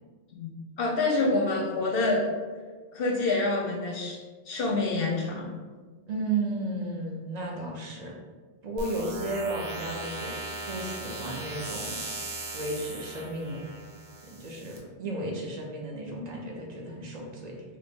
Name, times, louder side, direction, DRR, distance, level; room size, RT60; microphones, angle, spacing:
voice 1, 0.4-2.3 2.9-4.2 4.5-5.5, left 2 dB, 65° left, 0 dB, 0.7 m, -27 dB
voice 2, 6.1-8.2 8.6-10.3 10.7-12.0 12.5-13.6 14.2-17.6, right 2 dB, 45° right, -1 dB, 0.6 m, -34 dB
sound 1, 8.8-14.8, right 2 dB, 60° right, 1.0 m, -38 dB
3.0 x 2.8 x 3.5 m, 1.4 s
omnidirectional pair, 1.2 m